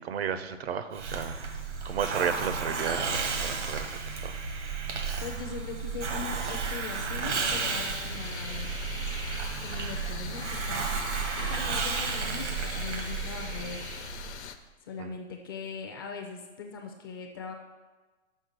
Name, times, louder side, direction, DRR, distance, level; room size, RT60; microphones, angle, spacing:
voice 1, 0.0-1.4 1.8-4.4 15.0-15.2, right 7 dB, 60° right, 11 dB, 0.7 m, -33 dB
Hiss, 0.9-14.4, right 5 dB, 80° right, 1.5 m, -33 dB
voice 2, 5.2-8.7 9.6-14.0 14.8-17.5, left 5 dB, 20° left, 2 dB, 0.4 m, -40 dB
sound 1, 7.3-14.6, left 8 dB, 70° left, 0.8 m, -42 dB
6.4 x 5.2 x 6.5 m, 1.3 s
hypercardioid pair, 150°, 35 cm